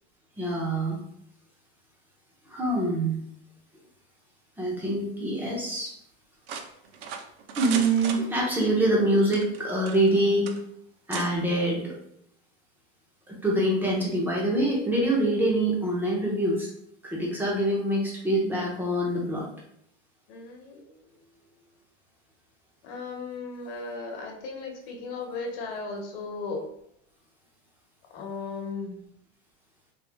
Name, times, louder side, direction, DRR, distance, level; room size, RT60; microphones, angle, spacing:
voice 1, 0.4-1.0 2.5-3.2 4.6-5.9 7.6-10.5 11.1-11.9 13.3-16.7 17.0-19.5, right 1 dB, 5° right, -3 dB, 0.6 m, -25 dB
sound 1, 6.5-8.7 9.2-10.2 10.5-10.6 11.1-11.3, right 6 dB, 60° right, 0.7 m, -36 dB
voice 2, 20.3-21.1 22.8-26.6 28.1-29.0, left 4 dB, 55° left, 2 dB, 1.1 m, -36 dB
3.5 x 3.1 x 3.0 m, 0.72 s
supercardioid pair, 160°, 35 cm